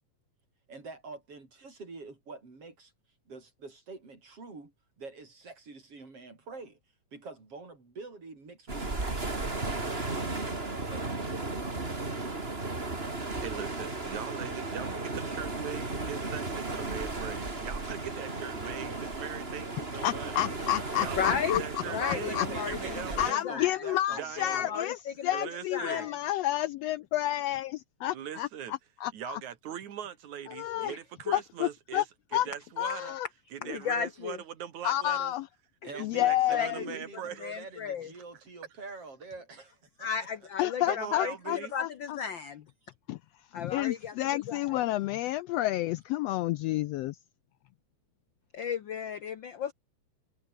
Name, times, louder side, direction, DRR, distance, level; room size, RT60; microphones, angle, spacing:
voice 1, 0.7-2.9 3.3-6.8 7.1-10.4 10.9-12.0 21.8-24.8 25.2-25.4 35.8-40.1, right 3 dB, 50° right, 6.6 m, -46 dB
sound 1, 8.7-23.3, right 2 dB, 20° right, 3.2 m, -35 dB
voice 2, 13.4-20.4 21.0-23.5 24.1-24.7 25.3-26.1 28.1-28.8 29.1-32.0 32.3-33.2 33.5-35.3 35.9-37.6 40.8-41.7, right 9 dB, 75° right, 3.2 m, -41 dB
voice 3, 20.0-21.6 22.0-22.5 23.2-25.0 25.2-28.5 29.0-29.4 30.5-30.9 31.3-32.0 32.3-32.5 32.8-33.3 34.8-35.4 36.0-36.8 40.6-42.2 43.1-43.2 43.5-47.2, left 14 dB, 80° left, 1.5 m, -30 dB
voice 4, 21.2-22.8 23.3-23.8 24.5-25.4 25.7-26.1 30.9-31.0 31.3-31.4 33.6-34.4 35.8-35.9 36.5-36.7 37.4-38.1 40.0-41.3 41.7-42.6 43.5-44.2 44.5-44.8 48.5-49.7, left 7 dB, 65° left, 1.2 m, -34 dB
omnidirectional pair, 3.3 m